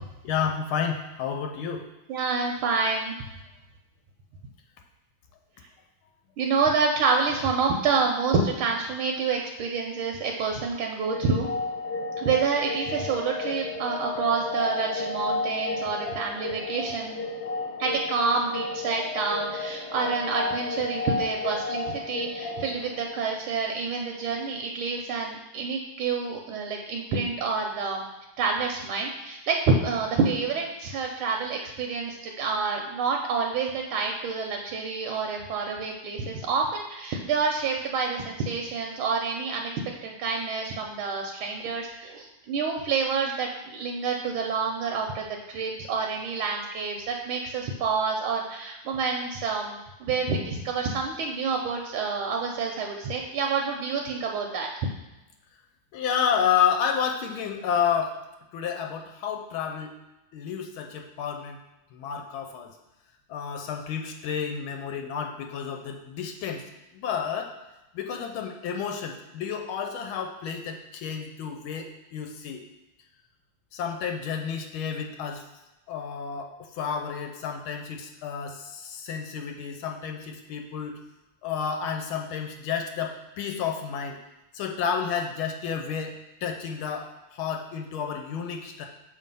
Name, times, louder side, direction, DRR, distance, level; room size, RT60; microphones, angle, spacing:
voice 1, 0.2-1.8 55.9-58.2 58.5-59.9 60.3-61.6 61.9-62.8 63.3-66.6 66.9-67.5 67.9-72.6 73.7-75.4 75.9-81.0 81.4-84.2 84.5-88.9, left 7 dB, 85° left, 4 dB, 1.4 m, -30 dB
voice 2, 2.1-3.1 6.4-11.5 12.2-17.2 17.8-28.0 28.4-39.7 40.0-54.7, right 4 dB, 85° right, 1 dB, 1.5 m, -28 dB
sound 1, 11.0-23.8, left 3 dB, 60° left, 1.2 m, -32 dB
6.6 x 3.3 x 5.3 m, 0.99 s
omnidirectional pair, 2.3 m